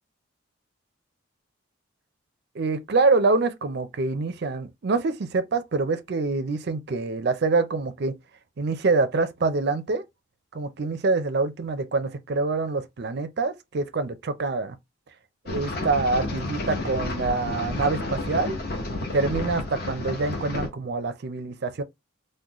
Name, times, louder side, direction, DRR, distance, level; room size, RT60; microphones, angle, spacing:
voice 1, 2.6-8.2 8.6-10.0 10.5-14.8 15.5-18.6 19.1-21.8, right 3 dB, 50° right, 0.4 m, -25 dB
sound 1, 15.5-20.7, left 2 dB, 45° left, 0.8 m, -31 dB
3.8 x 2.1 x 2.9 m
head